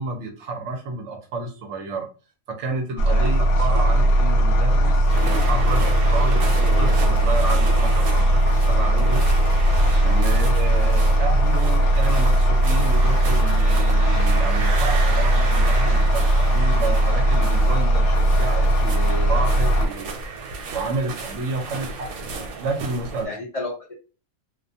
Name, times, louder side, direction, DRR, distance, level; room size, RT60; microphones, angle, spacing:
voice 1, 0.0-2.1 2.6-9.2 10.0-20.1 20.7-23.3, right 3 dB, 65° right, 3 dB, 0.9 m, -30 dB
sound 1, 3.0-19.9, right 1 dB, 85° left, 1.1 m, -18 dB
voice 2, 3.1-3.4 10.2-10.4 23.2-23.9, left 2 dB, 70° left, -3 dB, 0.3 m, -32 dB
Geiser - Iceland, 5.1-23.2, right 3 dB, 90° right, 1.1 m, -32 dB
2.4 x 2.2 x 2.6 m, 0.34 s
omnidirectional pair, 1.5 m